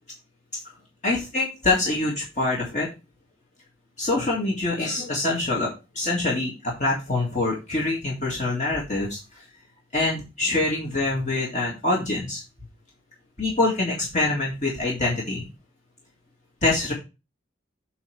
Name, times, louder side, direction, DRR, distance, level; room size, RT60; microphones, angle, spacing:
voice 1, 1.0-2.9 4.0-9.4 9.9-12.4 13.4-15.5 16.6-16.9, left 2 dB, 40° left, -4 dB, 2.0 m, -25 dB
7.9 x 3.1 x 6.3 m, 0.27 s
head